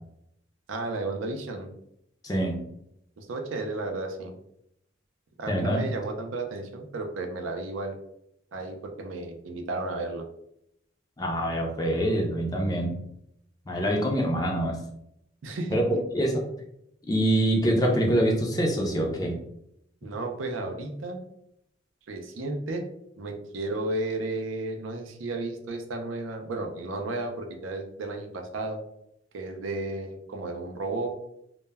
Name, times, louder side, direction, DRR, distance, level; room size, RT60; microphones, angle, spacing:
voice 1, 0.7-1.7 3.2-4.4 5.4-8.0 8.5-10.2 15.4-16.0 20.0-21.2 22.1-22.9 23.2-28.8 29.3-31.1, right 2 dB, 90° right, 4 dB, 0.4 m, -33 dB
voice 2, 2.2-2.6 5.5-5.8 11.2-13.0 13.7-14.8 15.7-15.9 16.1-16.3 17.1-19.4, right 1 dB, 20° left, 0 dB, 0.4 m, -25 dB
2.1 x 2.1 x 3.3 m, 0.77 s
head